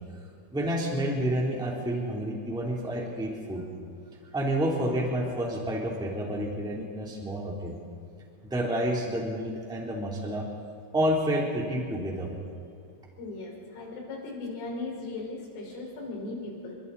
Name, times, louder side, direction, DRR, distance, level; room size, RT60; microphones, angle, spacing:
voice 1, 0.5-3.8 4.3-7.7 8.4-10.4 10.9-12.3, right 1 dB, ahead, -2 dB, 2.3 m, -29 dB
voice 2, 13.2-16.7, left 3 dB, 90° left, -1 dB, 7.7 m, -37 dB
30.0 x 25.5 x 4.2 m, 2.4 s
omnidirectional pair, 5.6 m